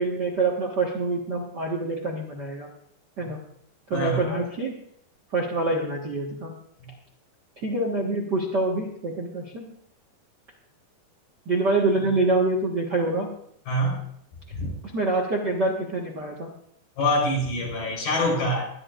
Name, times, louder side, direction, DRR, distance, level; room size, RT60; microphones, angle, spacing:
voice 1, 0.0-2.7 3.2-3.4 3.9-4.7 5.3-6.5 7.6-9.7 11.4-13.3 14.9-16.5, right 2 dB, 50° right, -1 dB, 1.3 m, -26 dB
voice 2, 3.9-4.4 13.7-14.0 14.6-14.7 17.0-18.7, left 1 dB, 75° left, -2 dB, 6.3 m, -25 dB
22.0 x 11.0 x 2.6 m, 0.69 s
omnidirectional pair, 4.4 m